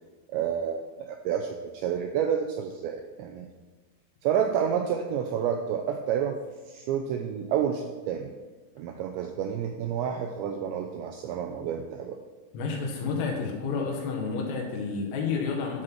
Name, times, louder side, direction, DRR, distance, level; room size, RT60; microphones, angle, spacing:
voice 1, 0.3-3.5 4.2-6.4 6.7-8.3 8.8-12.2, right 8 dB, 90° right, 4 dB, 2.6 m, -29 dB
voice 2, 12.5-15.8, left 5 dB, 75° left, 1 dB, 4.5 m, -30 dB
12.5 x 7.7 x 6.2 m, 1.3 s
omnidirectional pair, 6.0 m